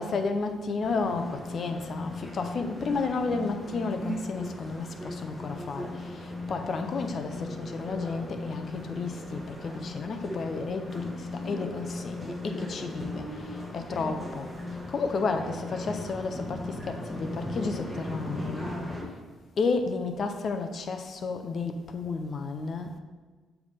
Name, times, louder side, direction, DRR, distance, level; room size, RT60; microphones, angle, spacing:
voice 1, 0.0-18.7 19.6-22.9, left 4 dB, 50° left, 7 dB, 0.6 m, -32 dB
sound 1, 0.8-19.0, left 1 dB, ahead, 1.2 m, -37 dB
7.0 x 3.4 x 5.3 m, 1.4 s
cardioid pair, 90°, 0 cm